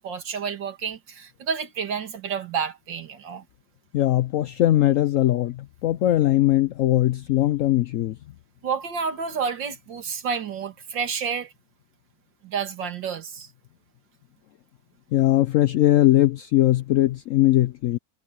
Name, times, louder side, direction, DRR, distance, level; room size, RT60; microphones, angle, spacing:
voice 1, 0.0-3.4 8.6-11.5 12.4-13.5, right 6 dB, 80° right, 2.5 m, -30 dB
voice 2, 3.9-8.2 15.1-18.0, left 14 dB, 80° left, 0.7 m, -20 dB
omnidirectional pair, 2.0 m